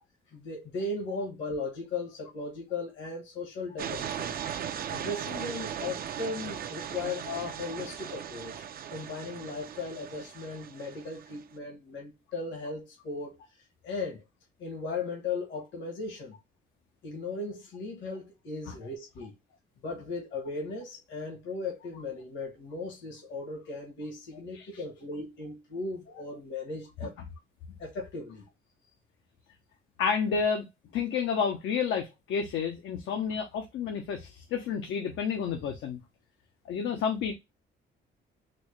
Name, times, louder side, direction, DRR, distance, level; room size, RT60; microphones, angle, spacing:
voice 1, 0.3-4.4 4.9-8.5 8.9-13.4 13.8-14.2 14.6-16.3 17.0-19.3 19.8-27.2 27.8-28.5, left 3 dB, 70° left, 1.3 m, -37 dB
sound 1, 3.8-11.4, right 9 dB, 50° right, 0.4 m, -38 dB
voice 2, 30.0-30.7 30.9-36.0 36.7-37.3, left 6 dB, 85° left, 0.7 m, -30 dB
4.2 x 2.1 x 3.1 m
cardioid pair, 90°, 20 cm